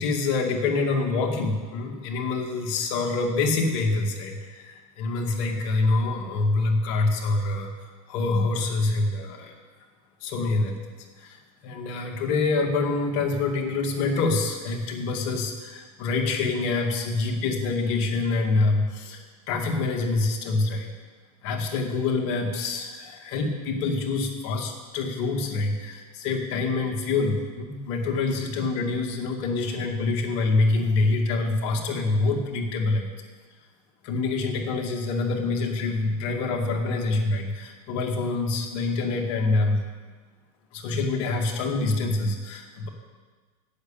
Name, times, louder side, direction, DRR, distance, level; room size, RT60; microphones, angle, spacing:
voice 1, 0.0-7.7 8.1-9.5 10.2-10.8 11.2-20.9 21.4-33.1 34.0-39.8 40.7-42.9, left 3 dB, 55° left, 2 dB, 2.1 m, -26 dB
8.3 x 8.0 x 8.7 m, 1.4 s
supercardioid pair, 125°, 20 cm